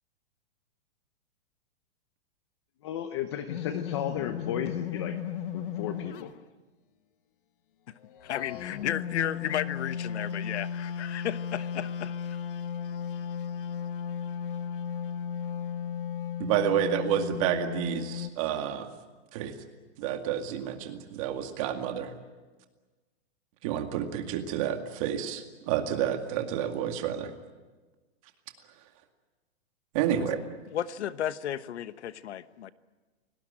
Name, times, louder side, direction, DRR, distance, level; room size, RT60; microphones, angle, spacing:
voice 1, 2.8-5.2 5.5-6.3, left 10 dB, 25° left, 9 dB, 0.7 m, -34 dB
sound 1, 3.5-6.4 8.0-18.3, left 8 dB, 50° left, 1.3 m, -35 dB
voice 2, 8.2-12.1 30.7-32.7, left 10 dB, 80° left, 13 dB, 1.2 m, -33 dB
voice 3, 16.4-18.9 19.3-19.5 20.0-22.1 23.6-27.3 29.9-30.4, right 10 dB, 30° right, 5 dB, 2.2 m, -29 dB
28.5 x 18.5 x 8.8 m, 1.3 s
supercardioid pair, 175°, 34 cm